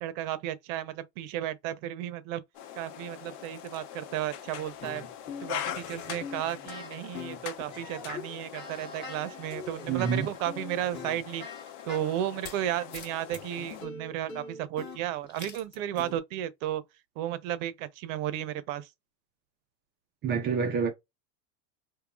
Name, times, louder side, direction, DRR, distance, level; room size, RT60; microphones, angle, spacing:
voice 1, 0.0-2.4 2.7-5.0 5.4-11.4 11.8-16.8 17.2-18.9, right 12 dB, 55° right, 0.7 m, -33 dB
sound 1, 2.5-13.8, left 10 dB, 70° left, 1.0 m, -42 dB
sound 2, 4.5-12.6 12.9-16.2, left 4 dB, 20° left, 1.0 m, -43 dB
voice 2, 9.9-10.3 20.2-20.9, right 6 dB, 25° right, 0.4 m, -27 dB
3.8 x 2.7 x 2.3 m
supercardioid pair, 145°, 50 cm